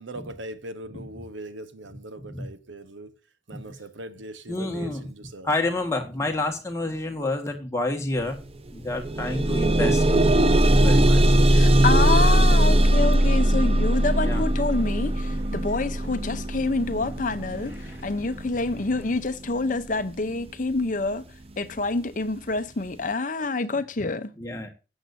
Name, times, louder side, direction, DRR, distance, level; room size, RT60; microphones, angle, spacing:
voice 1, 0.0-3.1 3.5-5.5, right 1 dB, 90° right, 1.1 m, -40 dB
voice 2, 4.5-5.1 5.4-8.4 8.7-10.3 10.5-11.4 12.5-12.7 14.2-14.4 23.4-23.8 24.4-24.7, left 2 dB, 15° left, 1.6 m, -30 dB
sound 1, 8.2-8.3 8.7-19.7 20.5-20.6 21.1-21.2, right 1 dB, 30° right, 0.6 m, -20 dB
voice 3, 11.5-17.7 18.0-21.2 21.6-24.3, left 3 dB, 45° left, 0.8 m, -27 dB
sound 2, 11.8-19.1, equal, 15° right, 3.6 m, -45 dB
14.0 x 8.1 x 2.7 m
head